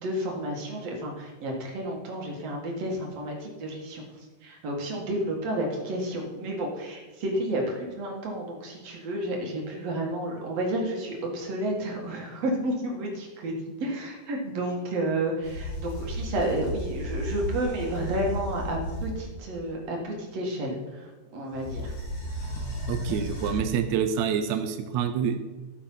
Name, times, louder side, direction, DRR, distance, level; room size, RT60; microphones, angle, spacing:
voice 1, 0.0-4.0 4.4-21.9, right 1 dB, 50° right, 0 dB, 2.7 m, -31 dB
sound 1, 15.4-19.6 21.5-23.8, equal, 40° left, 2.8 m, -34 dB
voice 2, 22.9-25.4, right 7 dB, 85° right, 7 dB, 1.6 m, -27 dB
13.5 x 7.0 x 5.7 m, 1.2 s
omnidirectional pair, 4.2 m